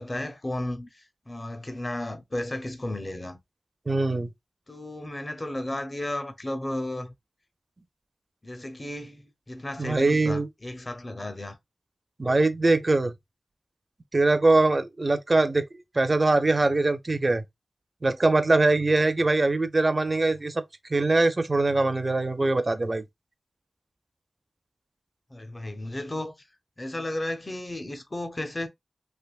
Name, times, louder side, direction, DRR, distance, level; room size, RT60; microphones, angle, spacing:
voice 1, 0.0-3.4 4.7-7.1 8.4-11.6 25.3-26.3 26.8-28.7, left 1 dB, 25° left, 0.5 m, -34 dB
voice 2, 3.9-4.3 9.8-10.5 12.2-13.1 14.1-15.7 15.9-17.4 18.0-20.6 20.9-23.0, right 2 dB, 35° right, 0.4 m, -22 dB
3.3 x 2.9 x 2.3 m
wide cardioid pair, 110°, 0 cm